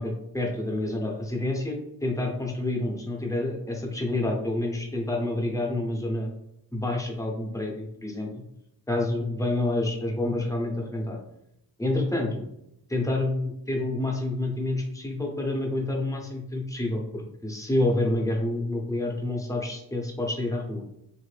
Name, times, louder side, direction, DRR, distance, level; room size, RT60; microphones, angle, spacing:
voice 1, 0.0-6.3 6.7-8.3 8.9-11.2 11.8-12.4 12.9-20.8, left 2 dB, 10° left, 0 dB, 0.8 m, -28 dB
3.2 x 2.6 x 3.3 m, 0.81 s
cardioid pair, 85°, 37 cm